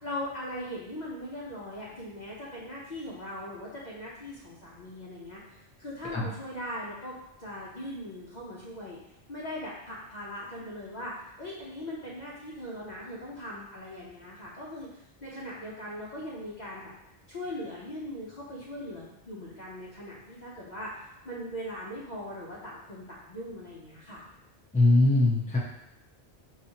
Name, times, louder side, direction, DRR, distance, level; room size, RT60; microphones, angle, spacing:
voice 1, 0.0-9.0 9.3-16.9 17.3-24.2, left 1 dB, 45° left, -6 dB, 0.8 m, -40 dB
voice 2, 24.7-25.6, left 2 dB, 10° left, -5 dB, 0.8 m, -21 dB
5.4 x 3.0 x 2.8 m, 0.83 s
omnidirectional pair, 1.1 m